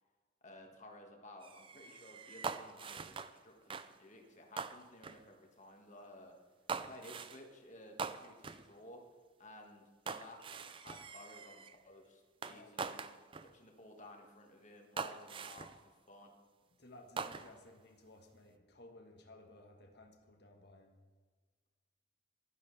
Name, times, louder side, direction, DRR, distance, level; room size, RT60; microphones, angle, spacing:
voice 1, 0.4-6.3 6.8-9.0 9.4-16.3, left 1 dB, 35° left, 2 dB, 1.8 m, -56 dB
sound 1, 1.4-3.4 3.7-4.0 4.6-5.2 6.7-7.4 8.0-8.7 10.1-11.8 12.4-13.5 14.2-14.3 15.0-15.8 17.2-17.7, right 5 dB, 25° right, 0.4 m, -43 dB
voice 2, 16.8-21.0, left 2 dB, 55° left, 3 dB, 1.4 m, -58 dB
15.5 x 12.0 x 3.4 m, 1.4 s
head